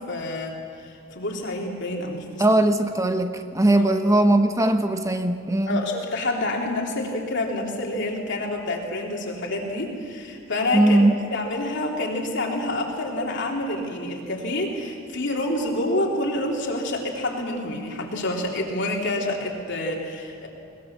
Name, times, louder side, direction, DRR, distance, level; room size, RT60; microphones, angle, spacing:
voice 1, 0.0-2.4 3.7-3.8 5.7-11.0 11.3-20.5, left 1 dB, 60° left, 0 dB, 3.2 m, -28 dB
voice 2, 2.4-5.9 10.7-11.2, right 1 dB, 15° right, 7 dB, 1.0 m, -20 dB
21.5 x 20.0 x 7.2 m, 2.3 s
head